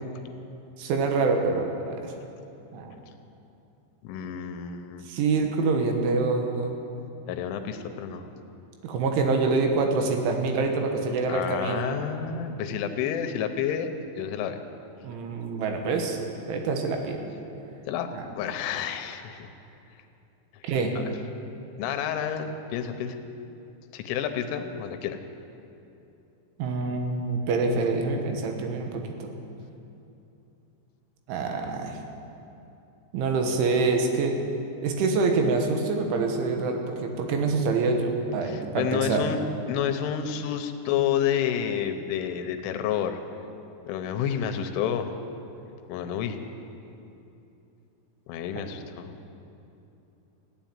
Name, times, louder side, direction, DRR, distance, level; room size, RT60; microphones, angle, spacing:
voice 1, 0.8-2.1 2.7-3.0 5.1-6.8 8.8-11.9 15.0-16.2 16.5-17.2 18.1-18.2 20.6-21.0 26.6-29.3 31.3-32.0 33.1-34.4 34.8-39.2, right 3 dB, 80° right, 3 dB, 3.7 m, -26 dB
voice 2, 4.0-5.1 7.3-8.3 11.3-13.9 14.2-14.6 17.9-18.1 18.4-19.5 20.5-20.6 21.0-21.1 21.8-23.2 23.9-25.2 38.4-43.2 43.9-45.2 45.9-46.4 48.3-49.2, left 8 dB, 90° left, 7 dB, 3.3 m, -29 dB
15.5 x 9.7 x 9.0 m, 2.8 s
omnidirectional pair, 5.6 m